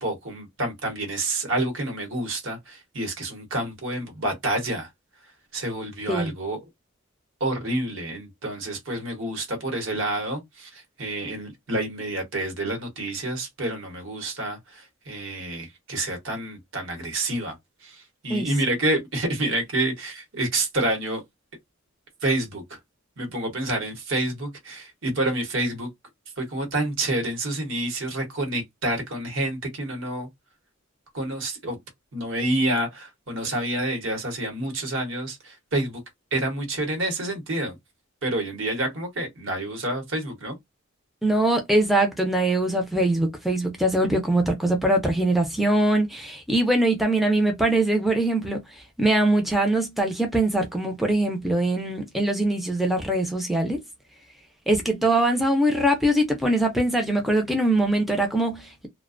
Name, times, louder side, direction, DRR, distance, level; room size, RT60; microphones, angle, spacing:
voice 1, 0.0-4.9 5.5-6.6 7.4-17.5 17.8-21.2 22.2-22.8 23.2-25.9 26.4-30.3 31.1-31.8 32.1-36.0 36.3-37.8 38.2-40.6, right 1 dB, 65° right, 1.0 m, -28 dB
voice 2, 41.2-53.8 54.7-58.9, right 1 dB, ahead, 0.4 m, -22 dB
2.4 x 2.1 x 2.4 m
head